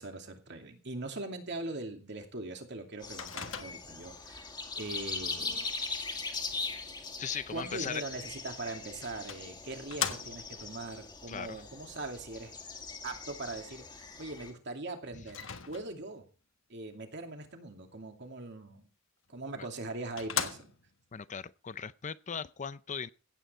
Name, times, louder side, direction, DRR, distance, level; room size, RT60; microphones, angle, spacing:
voice 1, 0.0-4.5 4.8-5.7 7.5-12.5 13.0-16.3 16.7-18.9 19.3-20.7, right 2 dB, 60° right, 2.6 m, -41 dB
sound 1, 3.0-14.5, left 4 dB, 20° left, 2.2 m, -41 dB
Microwave oven, 3.2-4.1 8.4-8.5 9.3-10.7 15.3-16.2 19.3-19.4 19.8-19.9 20.2-21.0, left 8 dB, 70° left, 1.5 m, -38 dB
voice 2, 7.2-8.0 11.3-11.6 19.6-19.7 21.1-23.1, left 7 dB, 35° left, 0.5 m, -38 dB
16.0 x 9.0 x 4.5 m
head